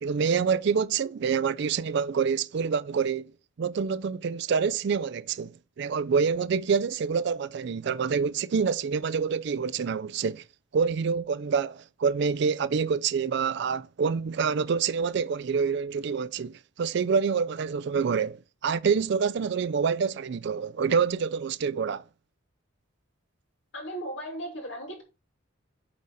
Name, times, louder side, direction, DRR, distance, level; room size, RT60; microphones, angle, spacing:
voice 1, 0.0-3.3 3.6-5.5 5.8-10.4 10.7-22.0, right 6 dB, 55° right, 0.3 m, -27 dB
voice 2, 23.7-25.0, right 1 dB, 60° left, 2.9 m, -36 dB
8.5 x 4.0 x 4.1 m
head